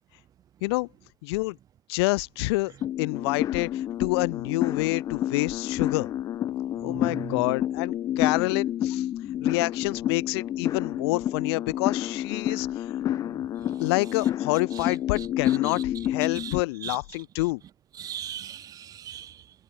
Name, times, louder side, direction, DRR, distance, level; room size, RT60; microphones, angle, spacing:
voice 1, 1.2-1.6 1.9-2.7 3.0-6.1 6.8-9.1 9.4-12.7 13.8-17.6, left 24 dB, 65° left, 0.7 m, -27 dB
sound 1, 2.8-16.6, left 11 dB, 25° left, 0.4 m, -29 dB
voice 2, 6.8-7.5 12.5-12.6 13.3-13.8 15.2-15.7 16.3-16.5 16.8-17.0 18.0-19.4, right 10 dB, 25° right, 0.7 m, -40 dB
supercardioid pair, 145°, 15 cm